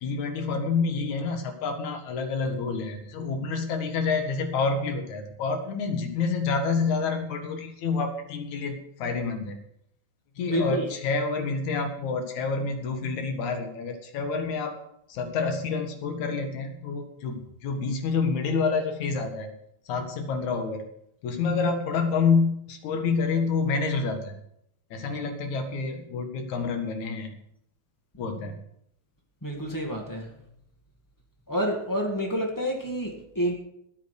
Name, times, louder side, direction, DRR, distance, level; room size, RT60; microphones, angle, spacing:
voice 1, 0.0-9.6 10.4-14.7 15.1-19.5 19.9-20.8 21.2-24.4 24.9-27.3 28.2-28.6, left 4 dB, 60° left, 5 dB, 2.8 m, -28 dB
voice 2, 10.5-10.9 25.2-25.3 29.4-30.3 31.5-33.5, equal, 15° left, 0 dB, 0.7 m, -28 dB
13.5 x 8.9 x 6.6 m, 0.76 s
omnidirectional pair, 4.2 m